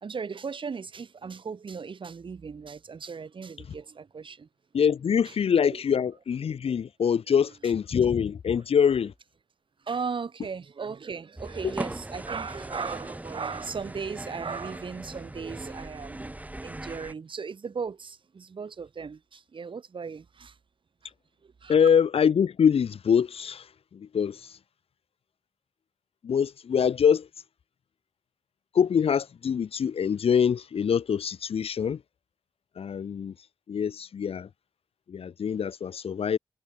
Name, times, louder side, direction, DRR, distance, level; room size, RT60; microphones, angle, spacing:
voice 1, 0.0-4.5 5.7-5.8 9.9-16.3 16.6-20.5 21.4-21.8, right 5 dB, 60° right, 1.2 m, -37 dB
voice 2, 4.7-9.1 21.7-24.6 26.2-27.3 28.7-32.0 32.7-34.5 35.1-36.4, left 7 dB, 75° left, 1.4 m, -24 dB
sound 1, 11.4-17.1, right 1 dB, 15° right, 1.0 m, -39 dB
cardioid pair, 45°, 10 cm